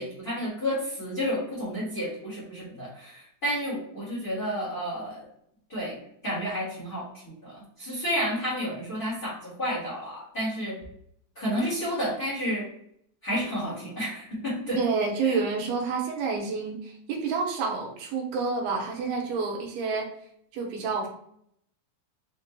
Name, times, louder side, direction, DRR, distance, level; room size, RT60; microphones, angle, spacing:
voice 1, 0.0-5.3 5.7-6.0 6.2-10.8 11.3-12.7 13.2-14.8 15.2-15.4, equal, 50° left, -8 dB, 1.1 m, -31 dB
voice 2, 14.8-20.1 20.5-21.1, right 4 dB, 85° right, 0 dB, 2.8 m, -29 dB
6.4 x 2.2 x 2.9 m, 0.70 s
omnidirectional pair, 4.5 m